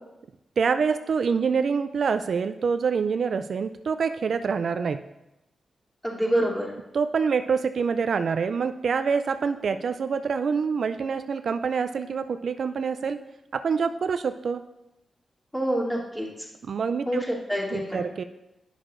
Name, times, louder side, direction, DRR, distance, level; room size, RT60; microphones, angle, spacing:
voice 1, 0.6-5.0 6.9-13.2 13.5-14.6 16.7-17.2 17.7-18.2, right 5 dB, 70° right, 10 dB, 0.3 m, -26 dB
voice 2, 6.0-6.7 15.5-16.5 17.0-18.1, equal, 10° left, -5 dB, 2.7 m, -27 dB
9.9 x 6.4 x 2.5 m, 0.90 s
supercardioid pair, 45°, 0 cm